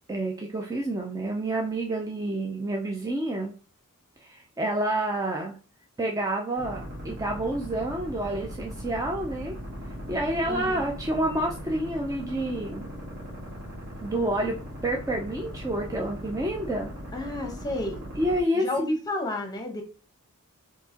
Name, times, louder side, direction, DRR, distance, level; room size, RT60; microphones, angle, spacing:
voice 1, 0.1-3.5 4.2-5.6 6.0-9.6 10.1-12.9 14.0-14.6 14.8-16.9 18.2-18.9, right 1 dB, 15° right, 0 dB, 0.4 m, -29 dB
sound 1, 6.5-18.4, equal, 50° right, 1.4 m, -39 dB
voice 2, 10.4-10.8 17.1-18.0 18.5-19.8, left 1 dB, 20° left, 3 dB, 0.9 m, -31 dB
4.6 x 2.8 x 2.8 m, 0.36 s
head